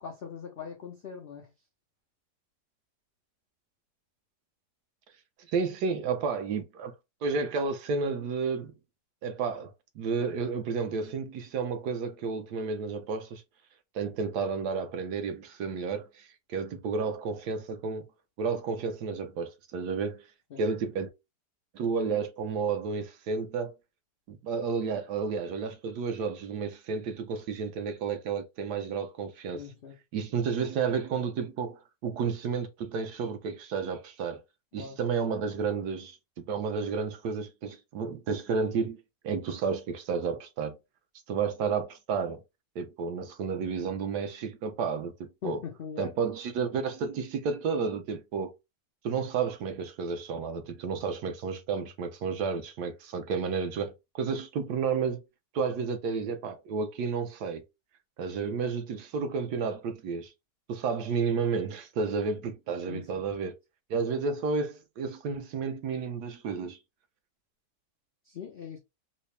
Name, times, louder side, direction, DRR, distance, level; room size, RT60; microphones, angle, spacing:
voice 1, 0.0-1.5 20.5-20.6 29.5-30.0 34.8-35.0 45.4-46.1 62.9-63.3 68.2-68.8, left 7 dB, 80° left, 0.5 m, -41 dB
voice 2, 5.5-6.9 7.2-8.7 9.2-13.4 13.9-18.1 18.4-20.2 20.6-21.1 21.7-23.7 24.3-29.6 30.1-34.4 34.7-40.8 41.3-42.4 42.8-45.6 46.0-48.5 49.0-55.2 55.5-57.6 58.2-60.3 60.7-63.5 63.9-66.8, right 5 dB, 70° right, 1.2 m, -31 dB
4.1 x 2.0 x 3.2 m
omnidirectional pair, 1.8 m